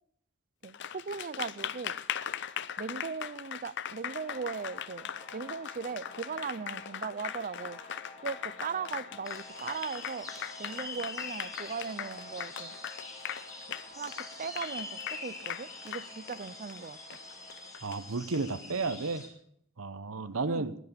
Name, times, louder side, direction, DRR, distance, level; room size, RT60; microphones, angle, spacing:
Applause, 0.6-18.4, left 9 dB, 60° left, 0.6 m, -40 dB
voice 1, 0.6-2.0 2.8-7.8 8.2-10.3 10.6-12.7 13.9-17.0 20.5-20.7, right 5 dB, 40° right, 18 dB, 0.5 m, -38 dB
sound 1, 4.2-17.7, left 1 dB, 35° left, 4.4 m, -51 dB
sound 2, 9.2-19.3, left 3 dB, 15° left, 4.0 m, -45 dB
voice 2, 17.8-19.2 19.8-20.8, right 3 dB, 90° right, 11 dB, 1.0 m, -32 dB
20.5 x 8.5 x 6.8 m, 0.67 s
head